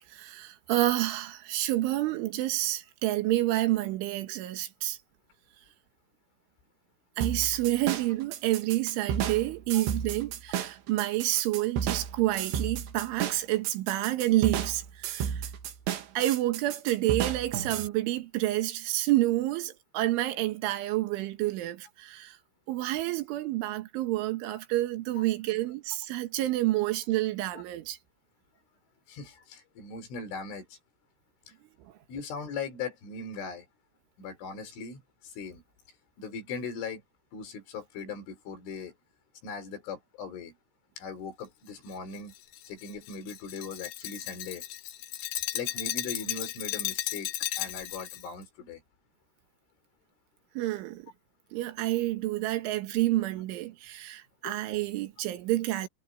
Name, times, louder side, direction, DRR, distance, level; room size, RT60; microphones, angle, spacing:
voice 1, 0.0-5.0 7.2-15.5 16.2-22.4 22.7-28.0 50.6-51.1 51.5-55.9, right 16 dB, 90° right, 4.0 m, -29 dB
sound 1, 7.2-17.9, right 8 dB, 70° right, 3.9 m, -33 dB
voice 2, 29.1-30.8 32.1-33.7 34.2-35.6 36.2-37.0 37.3-38.9 39.4-40.5 41.0-42.3 42.7-44.6 45.5-48.8 54.5-54.6, left 5 dB, 90° left, 7.0 m, -39 dB
Glass, 41.9-48.3, left 14 dB, 70° left, 3.2 m, -35 dB
omnidirectional pair, 5.3 m